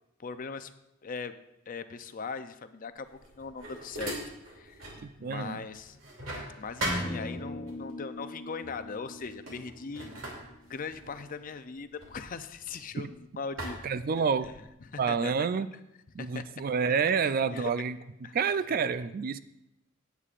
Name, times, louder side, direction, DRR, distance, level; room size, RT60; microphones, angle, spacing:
voice 1, 0.2-0.7 1.0-1.3 1.7-4.2 4.5-4.9 5.2-6.0 6.6-10.1 10.7-13.8 14.9-15.5 16.2-16.4 17.5-17.7 18.2-18.4, left 5 dB, 45° left, 11 dB, 0.5 m, -39 dB
sound 1, 3.0-5.1 5.4-7.7 8.6-8.9 9.2-13.1 13.6-14.7, right 1 dB, 85° right, 2.7 m, -40 dB
voice 2, 5.0-5.7 13.0-13.1 13.8-14.5 15.0-15.7 16.1-19.4, right 5 dB, 45° right, 13 dB, 0.4 m, -29 dB
sound 2, 6.8-11.0, left 1 dB, 5° left, 1.6 m, -40 dB
17.0 x 8.3 x 2.5 m, 0.88 s
head